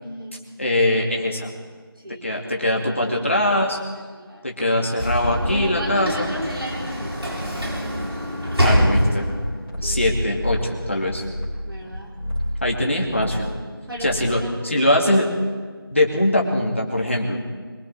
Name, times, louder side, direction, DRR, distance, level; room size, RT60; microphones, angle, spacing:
voice 1, 0.0-0.4 2.0-3.7 3.9-4.5 5.5-7.4 9.8-10.1 11.6-12.1 13.9-14.6, right 1 dB, 65° right, -2 dB, 4.4 m, -35 dB
voice 2, 0.6-1.5 2.2-3.8 4.4-6.3 8.6-9.3 9.8-11.2 12.6-13.5 14.0-15.3 15.9-17.4, left 1 dB, 30° left, -1 dB, 2.6 m, -22 dB
Sliding door / Slam, 4.9-9.6, equal, 90° right, 7.3 m, -24 dB
sound 1, 5.0-8.2 8.4-8.5, equal, 20° right, 5.3 m, -31 dB
sound 2, 9.3-11.9 12.1-12.7 13.0-13.6 13.9-14.5, equal, ahead, 1.9 m, -29 dB
24.0 x 23.0 x 4.7 m, 1.5 s
figure-of-eight pair, 180°, 13 cm